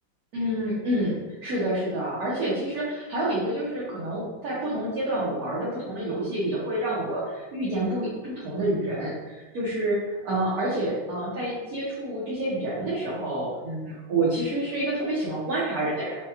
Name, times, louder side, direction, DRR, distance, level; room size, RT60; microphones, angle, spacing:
voice 1, 0.3-16.2, right 1 dB, 60° right, -9 dB, 1.1 m, -28 dB
4.6 x 2.2 x 2.9 m, 1.2 s
omnidirectional pair, 2.1 m